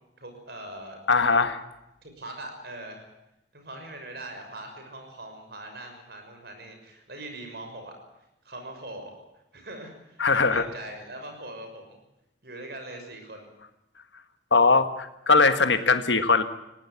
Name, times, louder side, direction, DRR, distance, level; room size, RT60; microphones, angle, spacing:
voice 1, 0.2-1.0 2.0-3.1 3.5-7.9 8.4-9.2 9.5-12.0 12.4-13.5, right 1 dB, 60° right, 5 dB, 6.3 m, -41 dB
voice 2, 1.1-1.6 10.2-10.6 14.5-16.4, left 4 dB, 80° left, 10 dB, 1.6 m, -20 dB
21.0 x 17.0 x 9.7 m, 0.88 s
head